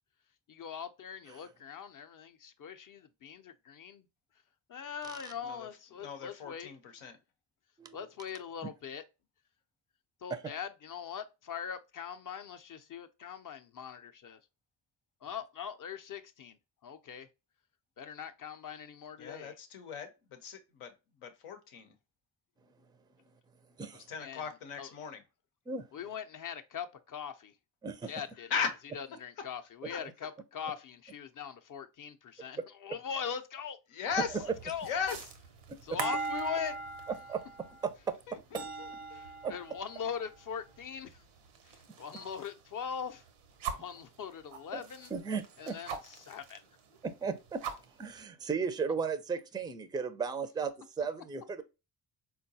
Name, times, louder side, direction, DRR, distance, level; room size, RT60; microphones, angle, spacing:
voice 1, 0.5-4.1 4.7-6.7 7.9-9.0 10.2-14.4 15.2-17.3 18.0-19.6 24.2-24.5 24.8-24.9 25.9-27.5 28.1-28.5 28.9-33.8 34.6-34.9 35.8-36.8 39.1-41.2 41.6-43.2 43.7-45.1 45.6-46.6, left 7 dB, 40° left, 0.5 m, -41 dB
voice 2, 6.0-7.2 19.2-20.9 21.2-21.9 24.1-25.2 28.0-28.1 28.5-28.7 29.9-30.0 33.9-34.4 34.9-35.2 38.5-39.2, left 6 dB, 90° left, 0.7 m, -37 dB
sound 1, 34.1-42.6 42.9-44.0 44.5-46.6 46.9-47.0 47.3-48.2, right 5 dB, 90° right, 0.6 m, -41 dB
voice 3, 37.3-38.1 39.4-39.5 44.7-44.8 45.1-45.8 47.0-47.6 48.0-51.6, right 5 dB, 10° right, 0.3 m, -35 dB
3.8 x 2.2 x 2.6 m
supercardioid pair, 55°, 48 cm